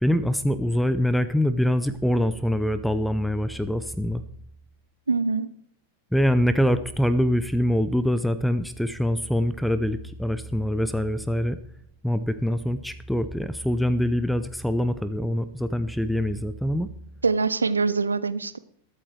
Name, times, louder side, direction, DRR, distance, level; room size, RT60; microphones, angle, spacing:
voice 1, 0.0-4.2 6.1-11.6 12.0-16.9, equal, ahead, 13 dB, 0.6 m, -24 dB
voice 2, 5.1-5.5 17.2-18.6, right 4 dB, 75° right, 15 dB, 0.7 m, -24 dB
21.5 x 8.6 x 3.3 m, 0.69 s
figure-of-eight pair, 90°, 0 cm